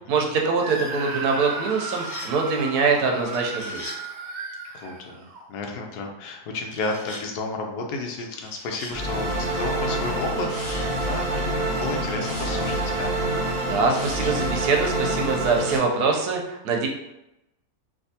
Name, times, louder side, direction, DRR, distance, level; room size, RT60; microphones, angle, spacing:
voice 1, 0.1-3.9 13.6-16.9, right 4 dB, 85° right, 1 dB, 1.2 m, -24 dB
Screaming, 0.6-5.5, right 3 dB, 65° right, 0.9 m, -34 dB
sound 1, 1.5-2.3 3.3-4.0 6.6-7.2 8.2-9.0 9.9-10.9 11.7-12.6 13.4-14.3, left 1 dB, 70° left, 1.4 m, -42 dB
voice 2, 4.7-13.1, left 3 dB, 85° left, 1 dB, 1.2 m, -32 dB
sound 2, 8.9-15.8, right 2 dB, 35° right, 0.7 m, -26 dB
3.4 x 2.7 x 2.7 m, 0.90 s
omnidirectional pair, 1.7 m